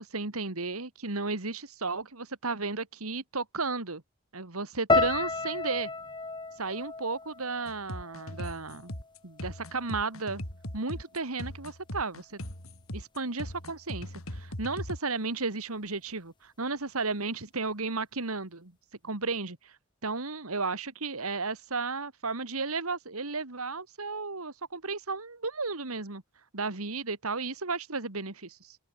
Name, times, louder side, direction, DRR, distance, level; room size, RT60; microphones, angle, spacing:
voice 1, 0.0-4.0 4.3-5.9 6.6-9.0 9.2-10.4 10.7-12.4 12.9-18.7 19.0-19.8 20.0-26.2 26.5-28.8, right 3 dB, 85° right, 2.6 m, -34 dB
sound 1, 4.9-9.1 9.4-10.1 10.7-11.0, left 3 dB, 20° left, 1.8 m, -32 dB
sound 2, 7.7-15.0, left 1 dB, 75° left, 5.9 m, -39 dB
open air
head